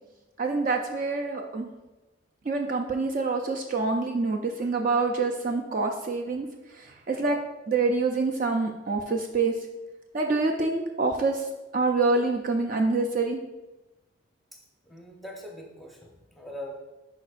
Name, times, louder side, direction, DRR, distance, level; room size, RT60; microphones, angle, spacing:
voice 1, 0.4-1.7 2.5-6.5 6.8-7.4 7.7-9.5 10.1-11.5 11.7-13.4, right 3 dB, 40° right, 2 dB, 0.4 m, -26 dB
voice 2, 14.8-16.7, left 1 dB, ahead, -1 dB, 0.7 m, -42 dB
10.5 x 4.2 x 2.5 m, 1.1 s
head